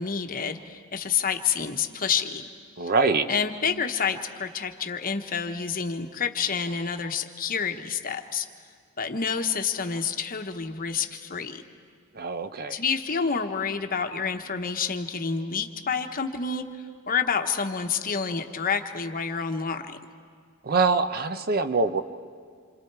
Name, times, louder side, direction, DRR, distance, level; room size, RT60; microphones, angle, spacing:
voice 1, 0.0-2.5 3.3-8.5 9.0-11.6 12.7-16.6 17.1-20.0, left 6 dB, 40° left, 6 dB, 1.1 m, -28 dB
voice 2, 2.8-3.3 12.1-12.8 20.6-22.0, right 4 dB, 45° right, 10 dB, 0.7 m, -24 dB
27.5 x 27.0 x 4.7 m, 2.1 s
head